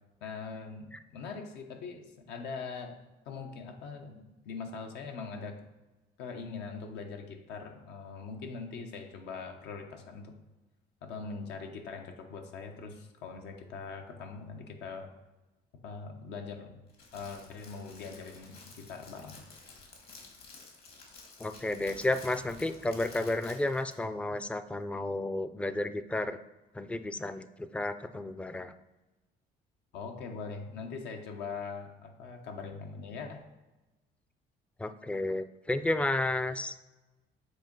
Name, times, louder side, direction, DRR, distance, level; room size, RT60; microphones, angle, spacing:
voice 1, 0.2-5.7 6.2-10.4 11.0-15.1 15.7-16.8 17.1-19.4 29.9-33.5, left 4 dB, 85° left, 4 dB, 0.9 m, -42 dB
Crackle, 16.9-24.0, left 3 dB, 65° left, 1.9 m, -52 dB
voice 2, 21.4-26.4 26.7-28.7 34.8-36.8, left 2 dB, 5° left, 11 dB, 0.3 m, -32 dB
7.6 x 2.9 x 5.2 m, 1.1 s
cardioid pair, 110°, 17 cm